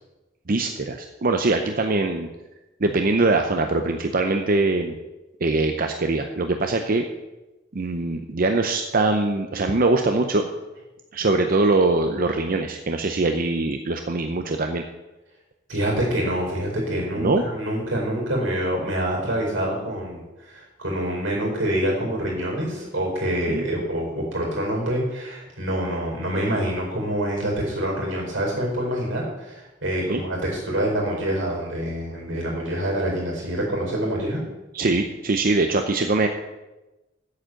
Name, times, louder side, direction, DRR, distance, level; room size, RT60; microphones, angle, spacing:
voice 1, 0.5-2.3 2.8-5.0 5.4-7.0 7.7-10.5 11.1-14.8 17.2-17.4 23.5-23.6 30.1-30.2 34.7-36.3, right 2 dB, 50° right, 6 dB, 0.7 m, -22 dB
voice 2, 15.7-34.4, right 1 dB, 85° right, -1 dB, 4.6 m, -26 dB
8.4 x 7.8 x 7.7 m, 1.1 s
head